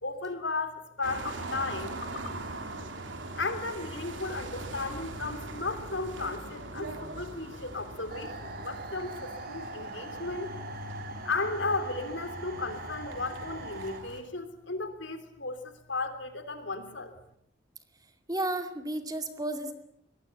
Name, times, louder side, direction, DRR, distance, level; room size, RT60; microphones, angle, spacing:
voice 1, 0.0-2.3 3.4-10.5 11.2-17.1, left 3 dB, 75° left, 10 dB, 3.2 m, -35 dB
sound 1, 1.0-14.2, right 2 dB, 80° right, 3.6 m, -41 dB
sound 2, 8.1-14.0, right 2 dB, 50° right, 2.7 m, -42 dB
voice 2, 18.3-19.7, right 1 dB, 20° right, 7 dB, 2.2 m, -32 dB
23.5 x 19.5 x 8.3 m, 0.71 s
head